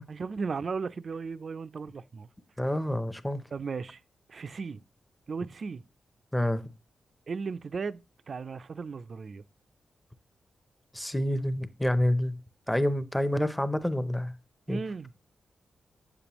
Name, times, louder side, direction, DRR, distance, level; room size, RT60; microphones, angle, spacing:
voice 1, 0.1-2.3 3.5-4.0 4.3-4.8 5.3-5.8 7.3-8.0 8.3-9.4 14.7-15.1, right 5 dB, 45° right, 0.3 m, -36 dB
voice 2, 2.6-3.4 6.3-6.6 10.9-12.4 12.7-14.3 14.7-14.8, left 1 dB, 5° left, 0.6 m, -28 dB
8.7 x 6.9 x 2.9 m
wide cardioid pair, 135°, 0 cm